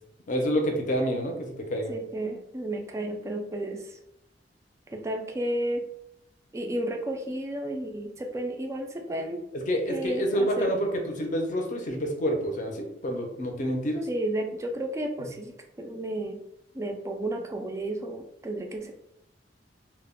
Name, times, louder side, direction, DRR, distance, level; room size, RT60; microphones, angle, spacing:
voice 1, 0.3-1.9 9.7-10.9 11.2-14.0, equal, 45° left, 3 dB, 0.5 m, -28 dB
voice 2, 1.9-4.0 4.9-5.9 6.5-9.4 9.9-10.7 14.0-16.4 16.7-18.9, right 1 dB, 15° right, 3 dB, 0.3 m, -32 dB
2.1 x 2.0 x 3.5 m, 0.82 s
head